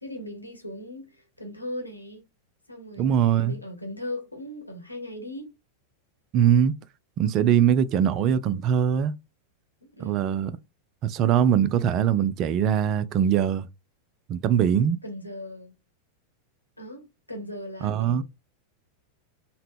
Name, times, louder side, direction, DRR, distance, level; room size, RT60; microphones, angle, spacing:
voice 1, 0.0-2.3 2.7-5.5 9.8-10.4 15.0-15.7 16.8-18.2, left 1 dB, 85° left, 1.0 m, -38 dB
voice 2, 3.0-3.6 6.3-6.7 7.2-9.1 10.0-10.5 11.0-13.7 14.3-15.0 17.8-18.2, right 9 dB, 35° right, 0.3 m, -22 dB
3.7 x 2.1 x 3.5 m
figure-of-eight pair, 90°, 0 cm